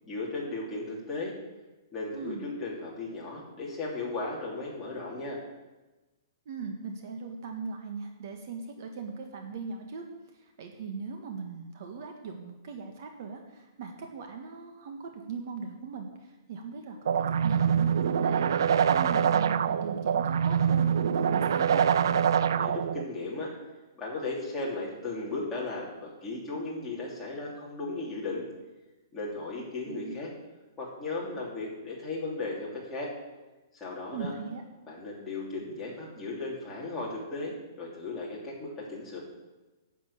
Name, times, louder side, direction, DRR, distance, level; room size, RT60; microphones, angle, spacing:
voice 1, 0.0-1.3 1.9-5.4 22.6-23.5 24.0-28.4 29.1-30.3 30.8-33.1 33.7-34.3 34.8-39.2, left 3 dB, 10° left, -6 dB, 3.0 m, -36 dB
voice 2, 2.1-2.5 6.4-10.0 10.4-17.1 17.4-21.8 29.5-30.2 34.1-34.6, right 5 dB, 45° right, 4 dB, 1.5 m, -39 dB
sound 1, 17.0-23.0, right 8 dB, 65° right, 0.6 m, -25 dB
10.0 x 7.4 x 8.6 m, 1.1 s
hypercardioid pair, 170°, 2 cm